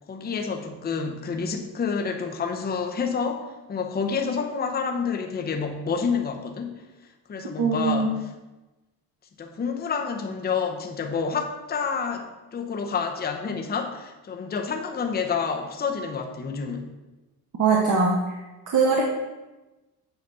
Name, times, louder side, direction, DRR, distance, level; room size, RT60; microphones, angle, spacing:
voice 1, 0.1-6.8 7.3-8.3 9.4-16.9, left 5 dB, 25° left, 3 dB, 0.8 m, -29 dB
voice 2, 7.6-8.1 17.6-18.4 18.7-19.0, right 4 dB, 45° right, -2 dB, 1.3 m, -21 dB
8.0 x 4.1 x 6.8 m, 1.1 s
cardioid pair, 135°, 42 cm